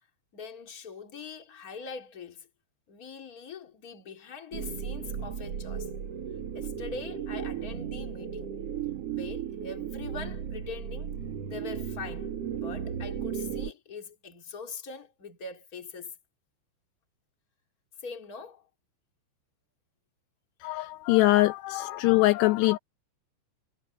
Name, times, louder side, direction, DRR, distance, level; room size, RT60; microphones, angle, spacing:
voice 1, 0.3-2.5 2.9-5.9 6.5-8.6 9.1-11.1 11.5-16.2 18.0-18.7, left 5 dB, 25° left, 2.4 m, -42 dB
sound 1, 4.5-13.7, right 8 dB, 75° right, 1.4 m, -35 dB
voice 2, 20.6-22.8, left 19 dB, 85° left, 2.4 m, -23 dB
omnidirectional pair, 5.5 m